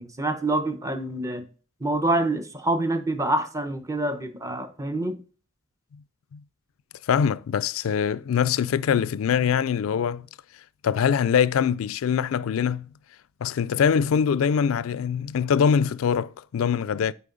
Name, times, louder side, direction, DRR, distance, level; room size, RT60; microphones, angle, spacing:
voice 1, 0.0-1.4 1.8-5.2, right 2 dB, 15° right, 0.7 m, -26 dB
voice 2, 7.1-10.2 10.8-12.9 13.4-17.1, left 7 dB, 70° left, 0.3 m, -23 dB
8.3 x 4.5 x 3.9 m
head